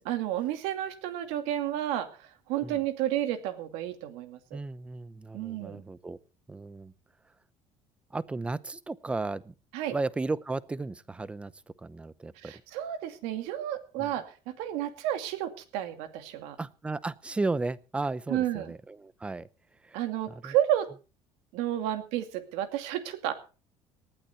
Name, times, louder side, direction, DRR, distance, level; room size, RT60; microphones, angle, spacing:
voice 1, 0.0-4.6 5.3-5.8 9.7-10.0 12.4-16.6 18.3-18.7 19.9-20.9 21.5-23.3, right 12 dB, 85° right, 9 dB, 2.4 m, -31 dB
voice 2, 4.5-6.2 6.5-6.9 8.1-9.5 9.9-11.5 11.8-12.5 14.0-14.1 16.6-19.5 19.8-20.0 20.3-20.5, right 3 dB, 10° right, 19 dB, 0.6 m, -34 dB
19.0 x 12.0 x 4.5 m, 0.35 s
cardioid pair, 155°, 11 cm